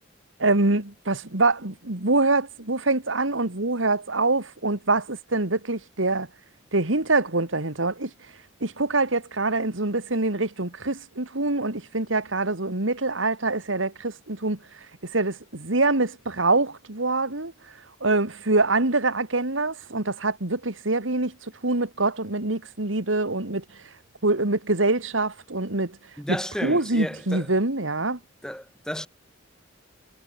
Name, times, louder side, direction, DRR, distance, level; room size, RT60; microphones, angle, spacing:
voice 1, 0.4-6.3 6.7-8.1 8.6-14.6 15.1-17.5 18.0-21.3 21.6-23.6 24.2-26.0 26.3-26.4 26.6-28.2, right 2 dB, 80° right, 2.6 m, -24 dB
voice 2, 26.2-27.5 28.4-29.1, equal, 5° left, 6.4 m, -32 dB
head